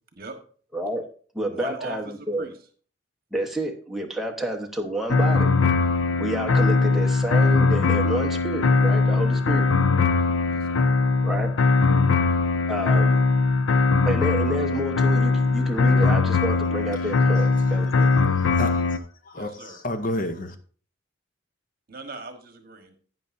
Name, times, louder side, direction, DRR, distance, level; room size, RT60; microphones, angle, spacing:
voice 1, 0.7-1.0 1.3-2.5 3.3-5.5 6.2-9.7 11.2-11.5 12.7-13.2 14.1-18.1, right 1 dB, ahead, 1 dB, 1.0 m, -29 dB
voice 2, 1.5-2.5 10.5-10.9 19.3-19.8 21.9-23.0, right 3 dB, 50° right, 6 dB, 1.3 m, -39 dB
sound 1, 5.1-19.0, left 3 dB, 90° left, 0.5 m, -20 dB
voice 3, 16.4-17.1 17.7-20.6, left 1 dB, 45° left, 9 dB, 0.7 m, -33 dB
11.5 x 9.2 x 2.6 m, 0.43 s
head